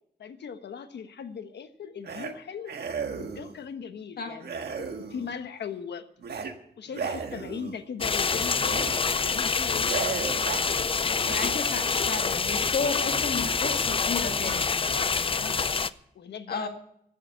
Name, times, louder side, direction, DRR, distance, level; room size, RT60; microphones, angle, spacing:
voice 1, 0.2-2.8 3.1-6.0 6.8-11.0 14.7-15.8 16.1-16.7, left 7 dB, 85° left, 9 dB, 1.2 m, -39 dB
sound 1, 2.0-2.3 2.7-3.6 4.4-5.3 6.2-6.5 6.9-7.8 8.6-8.9 9.3-9.5 9.8-10.7 11.2-11.6, right 5 dB, 70° right, 1.6 m, -35 dB
sound 2, 8.0-15.9, left 5 dB, 30° left, 0.5 m, -26 dB
voice 2, 11.2-14.7 16.5-16.7, left 4 dB, 65° left, 5 dB, 1.8 m, -32 dB
15.5 x 8.6 x 8.2 m, 0.74 s
wide cardioid pair, 115°, 17 cm